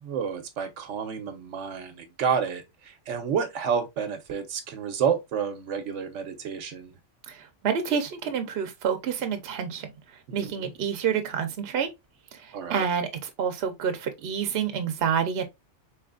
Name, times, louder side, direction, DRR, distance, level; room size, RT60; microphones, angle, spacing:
voice 1, 0.0-6.9 10.3-10.7 12.5-12.9, right 7 dB, 80° right, 1.1 m, -30 dB
voice 2, 7.3-9.9 10.3-11.9 12.3-15.4, right 7 dB, 65° right, 0.9 m, -28 dB
4.1 x 3.2 x 2.3 m
omnidirectional pair, 1.2 m